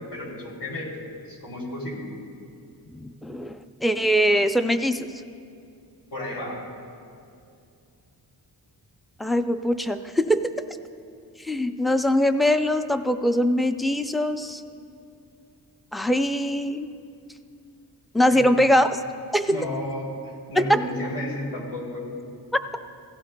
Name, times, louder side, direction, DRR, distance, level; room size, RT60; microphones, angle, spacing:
voice 1, 0.0-2.1 6.1-6.7 18.3-18.7 19.5-22.1, left 1 dB, 75° left, -3 dB, 3.1 m, -33 dB
voice 2, 2.9-5.1 9.2-10.5 11.4-14.6 15.9-16.9 18.1-19.0 19.3-19.5 20.6-20.7, equal, ahead, 9 dB, 0.3 m, -22 dB
17.0 x 15.0 x 2.2 m, 2.5 s
wide cardioid pair, 105°, 41 cm